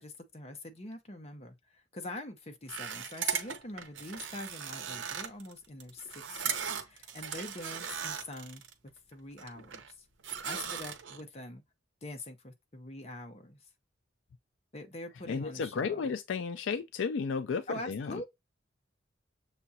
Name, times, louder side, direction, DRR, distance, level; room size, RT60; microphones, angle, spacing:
voice 1, 0.0-8.6 9.1-10.0 10.4-11.6 12.0-13.6 14.7-16.1 17.7-18.2, left 1 dB, 35° left, 0.8 m, -44 dB
sound 1, 2.7-8.7 9.1-9.9 10.2-11.2, right 7 dB, 75° right, 0.7 m, -38 dB
voice 2, 15.3-18.2, left 5 dB, 70° left, 0.4 m, -33 dB
6.7 x 2.4 x 2.7 m
head